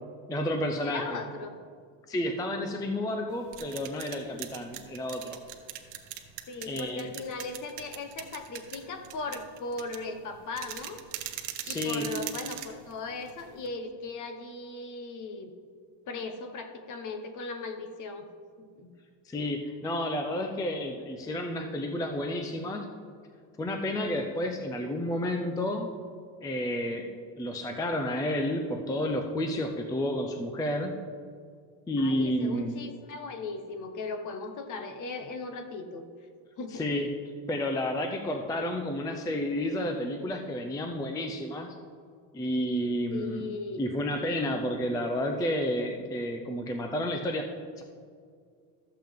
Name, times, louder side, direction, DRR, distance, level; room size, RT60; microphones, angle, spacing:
voice 1, 0.3-1.2 2.1-5.4 6.6-7.1 11.6-12.1 19.3-22.9 23.6-25.9 26.4-27.1 27.4-31.0 31.9-32.8 36.7-37.1 37.5-41.8 42.3-43.5 43.8-47.5 47.8-47.9, left 1 dB, 10° left, 4 dB, 0.4 m, -31 dB
voice 2, 0.8-1.6 3.1-3.2 6.5-11.0 11.7-15.5 16.1-18.3 18.6-18.9 32.0-36.1 36.6-36.9 38.5-38.7 43.1-43.8, left 3 dB, 40° left, 7 dB, 1.0 m, -38 dB
sound 1, 3.3-13.7, right 12 dB, 80° right, 1.0 m, -41 dB
13.0 x 7.6 x 3.6 m, 2.1 s
cardioid pair, 135°, 45 cm